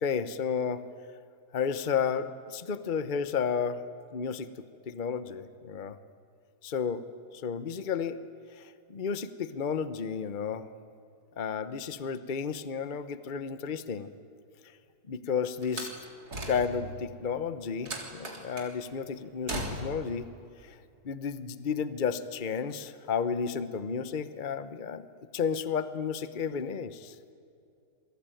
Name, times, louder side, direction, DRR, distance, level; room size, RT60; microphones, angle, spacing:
voice 1, 0.0-0.8 1.5-3.8 4.1-4.5 4.9-6.0 6.6-7.0 7.3-8.2 8.5-10.7 11.4-14.1 15.1-16.0 16.5-20.3 20.6-20.8 21.0-25.1 25.3-27.2, left 6 dB, 35° left, 12 dB, 1.0 m, -32 dB
Slam, 15.6-17.0 17.9-18.7 19.5-20.1, right 1 dB, 70° right, 4.0 m, -37 dB
28.0 x 22.5 x 9.2 m, 2.6 s
omnidirectional pair, 1.7 m